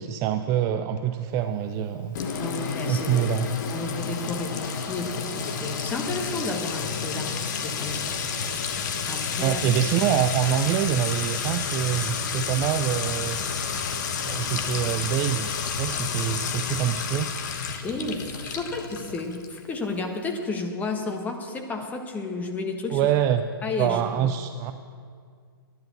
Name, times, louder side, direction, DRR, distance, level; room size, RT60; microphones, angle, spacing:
voice 1, 0.0-2.2 2.9-3.5 9.4-17.3 22.9-23.4 23.8-24.7, right 10 dB, 25° right, 9 dB, 0.4 m, -26 dB
Sink (filling or washing) / Trickle dribble / Fill (with liquid), 2.1-19.6, left 6 dB, 45° left, 1.3 m, -30 dB
voice 2, 2.4-3.3 3.7-8.2 9.1-9.6 17.8-23.0 23.6-24.3, left 3 dB, 10° left, 3 dB, 1.4 m, -32 dB
11.0 x 10.5 x 7.0 m, 2.1 s
figure-of-eight pair, 125°, 13 cm